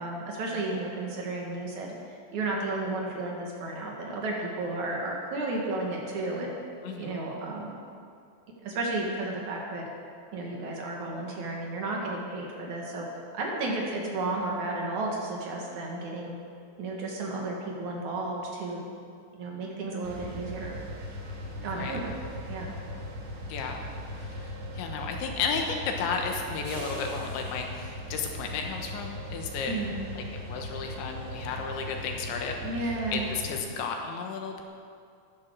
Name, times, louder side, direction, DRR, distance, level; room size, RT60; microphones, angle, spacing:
voice 1, 0.0-2.0 2.3-6.5 7.0-7.7 8.5-9.9 10.3-13.1 13.3-16.3 16.8-18.8 19.3-20.8 21.6-22.2 22.5-22.7 29.7-29.9 32.6-33.3, right 2 dB, 55° right, -1 dB, 2.4 m, -33 dB
sound 1, 20.0-33.6, equal, 75° right, 4.6 m, -39 dB
voice 2, 21.6-22.0 23.5-23.8 24.1-29.7 30.1-34.6, left 5 dB, 75° left, 3 dB, 3.3 m, -33 dB
14.0 x 11.0 x 6.3 m, 2.3 s
omnidirectional pair, 5.6 m